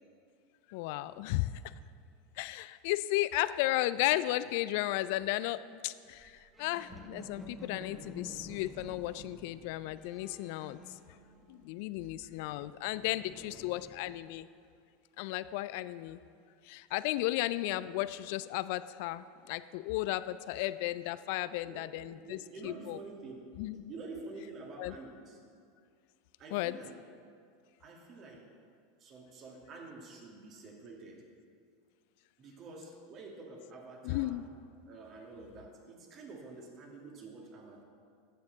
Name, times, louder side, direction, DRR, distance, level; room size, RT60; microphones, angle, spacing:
voice 1, 0.7-1.6 2.4-10.8 11.5-14.5 15.2-16.2 16.6-22.4 22.6-23.0 23.6-23.9 24.8-24.9 26.5-26.8 34.0-34.4, left 16 dB, 60° left, 15 dB, 0.3 m, -34 dB
sound 1, 6.2-11.8 12.0-14.3, left 1 dB, 10° right, 1.1 m, -51 dB
voice 2, 13.4-13.9 21.7-23.4 23.9-25.4 26.4-27.0 27.8-28.4 29.0-31.2 32.4-34.4 34.8-37.8, right 3 dB, 40° right, 1 dB, 2.0 m, -48 dB
12.0 x 8.5 x 3.9 m, 2.2 s
hypercardioid pair, 85°, 0 cm